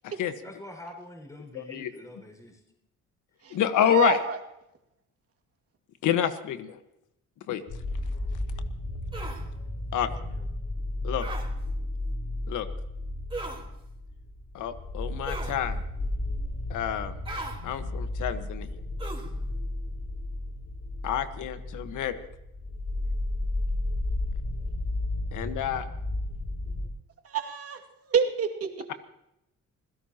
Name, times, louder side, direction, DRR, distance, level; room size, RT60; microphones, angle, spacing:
voice 1, 0.4-2.6 8.1-8.4 10.1-10.5, left 1 dB, 10° left, 2 dB, 5.7 m, -46 dB
voice 2, 1.5-1.9 3.5-4.2 6.0-6.8 7.5-7.6 9.9-10.1 11.0-11.3 12.5-12.7 14.5-15.8 16.7-17.1 17.6-18.7 21.0-22.2 25.3-25.9, left 10 dB, 85° left, 9 dB, 1.5 m, -28 dB
voice 3, 3.9-4.4 27.2-27.8 28.1-28.9, right 6 dB, 50° right, 3 dB, 2.4 m, -27 dB
sound 1, 7.7-26.9, left 1 dB, 50° left, 2.9 m, -33 dB
sound 2, 9.1-9.4 11.2-11.5 13.3-13.6 15.3-15.6 17.2-17.6 19.0-19.3, right 2 dB, 15° right, 3.9 m, -37 dB
26.5 x 16.5 x 3.0 m, 0.84 s
cardioid pair, 90°, 30 cm